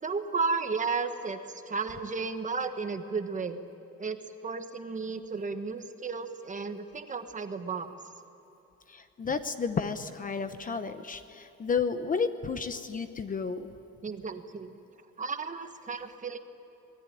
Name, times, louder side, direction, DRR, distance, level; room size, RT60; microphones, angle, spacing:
voice 1, 0.0-3.6 4.0-7.9 14.0-14.8 15.2-16.4, right 4 dB, 25° right, 8 dB, 1.2 m, -33 dB
voice 2, 8.9-13.7, left 5 dB, 30° left, 10 dB, 0.8 m, -32 dB
25.5 x 20.5 x 10.0 m, 2.9 s
cardioid pair, 175°, 30 cm